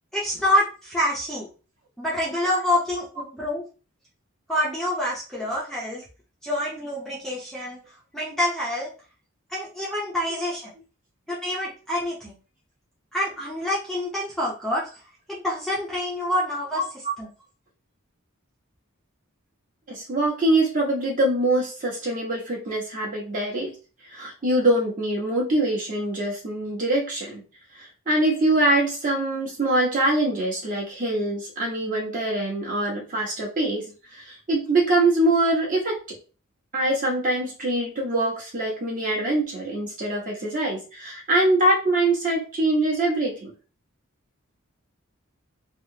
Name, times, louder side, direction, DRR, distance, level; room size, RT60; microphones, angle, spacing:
voice 1, 0.1-1.5 2.0-3.6 4.5-6.0 6.4-7.8 8.1-8.9 9.5-10.7 11.3-12.3 13.1-14.9 15.3-16.8 17.2-17.3, left 1 dB, ahead, -6 dB, 0.6 m, -27 dB
voice 2, 19.9-23.7 24.1-27.4 27.8-33.8 34.1-36.0 36.7-43.5, right 1 dB, 40° right, -4 dB, 1.2 m, -24 dB
3.2 x 2.0 x 2.8 m, 0.35 s
head